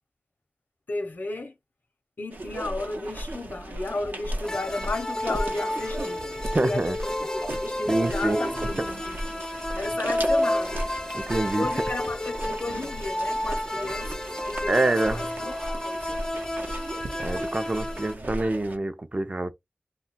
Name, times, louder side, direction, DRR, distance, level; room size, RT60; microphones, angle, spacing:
voice 1, 0.9-1.5 2.2-6.3 6.6-9.2 9.8-10.8 11.6-14.2 14.5-14.8 15.1-15.5 15.8-16.0, left 2 dB, 80° left, 0.6 m, -33 dB
sound 1, 2.3-18.8, right 1 dB, 75° right, 0.7 m, -36 dB
sound 2, 4.4-18.1, left 1 dB, 20° left, 0.4 m, -31 dB
voice 2, 6.5-7.0 7.9-8.7 11.1-11.7 14.7-15.4 17.2-19.5, right 2 dB, 40° right, 0.4 m, -26 dB
2.2 x 2.2 x 3.9 m
wide cardioid pair, 40°, 3 cm